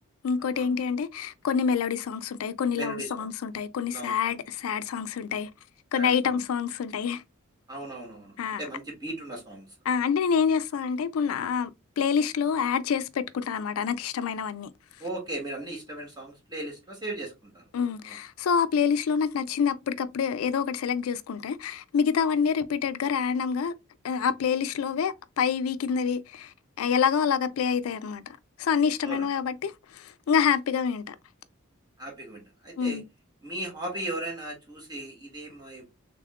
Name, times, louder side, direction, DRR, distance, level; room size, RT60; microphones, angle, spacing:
voice 1, 0.2-5.5 5.9-7.2 8.4-8.6 9.9-11.7 12.0-14.7 17.7-23.7 24.0-31.2 32.8-33.0, left 6 dB, 85° left, 0.4 m, -27 dB
voice 2, 2.7-3.3 3.9-4.4 5.9-6.3 7.7-9.7 15.0-17.6 18.0-18.1 29.0-29.3 32.0-33.0 33.4-35.9, right 1 dB, 20° right, 1.7 m, -37 dB
3.5 x 3.5 x 2.3 m
head